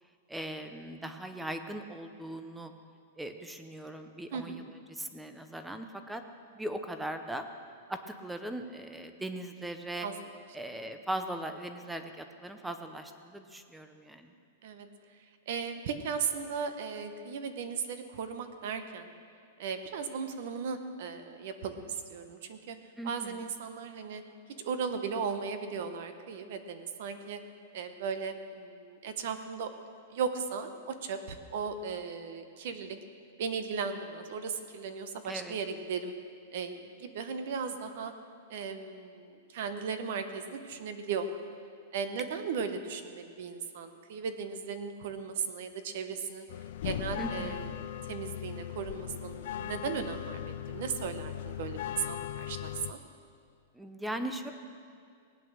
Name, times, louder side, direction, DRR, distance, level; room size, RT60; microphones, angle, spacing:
voice 1, 0.3-2.7 3.2-6.2 6.6-7.4 7.9-10.1 10.5-14.3 23.0-23.5 35.2-35.6 47.2-47.6 53.7-54.5, right 1 dB, 5° right, 7 dB, 0.6 m, -39 dB
voice 2, 4.3-4.6 10.0-10.1 14.6-14.9 15.5-19.1 19.6-22.8 23.0-24.2 24.6-27.4 27.7-29.7 30.1-33.0 33.4-36.1 36.5-38.1 38.5-41.4 41.9-46.5 46.8-53.0, right 6 dB, 50° right, 9 dB, 0.9 m, -36 dB
sound 1, 46.5-52.9, left 11 dB, 55° left, 0.5 m, -38 dB
18.5 x 8.8 x 6.3 m, 2.3 s
supercardioid pair, 175°, 0 cm